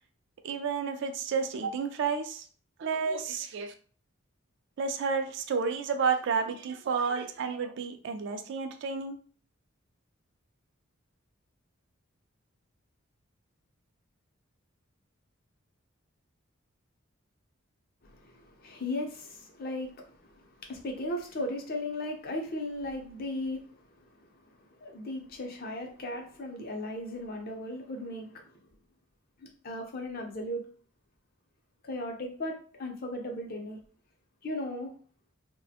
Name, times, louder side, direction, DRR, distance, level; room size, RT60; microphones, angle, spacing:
voice 1, 0.4-2.5 2.8-3.7 4.8-9.2, right 5 dB, 60° right, 7 dB, 0.3 m, -31 dB
voice 2, 18.0-23.7 24.2-28.4 29.4-30.6 31.8-33.8 34.4-34.9, left 1 dB, 45° left, 2 dB, 0.6 m, -37 dB
2.4 x 2.1 x 2.7 m, 0.42 s
head